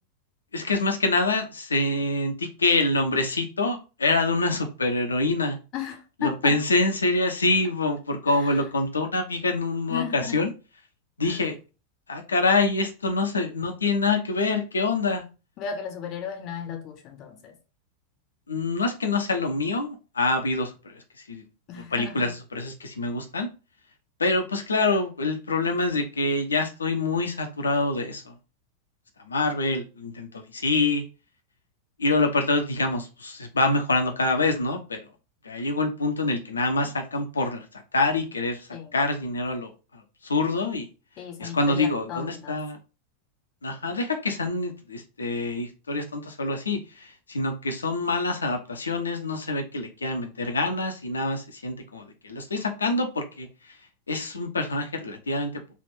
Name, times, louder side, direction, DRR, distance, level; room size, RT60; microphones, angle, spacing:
voice 1, 0.5-5.6 6.2-10.5 11.2-11.5 12.1-15.2 18.5-21.0 21.3-21.4 21.7-23.5 24.2-28.3 29.3-31.0 32.0-35.0 35.4-40.9 41.4-42.8 43.6-53.8 54.1-55.6, left 2 dB, 75° left, 0.7 m, -26 dB
voice 2, 5.7-6.6 8.3-8.6 9.9-10.4 11.2-11.4 15.6-17.6 21.7-22.3 38.7-38.9 41.2-42.6, left 8 dB, 35° left, 0.7 m, -35 dB
3.4 x 2.5 x 4.2 m
figure-of-eight pair, 90°, 0 cm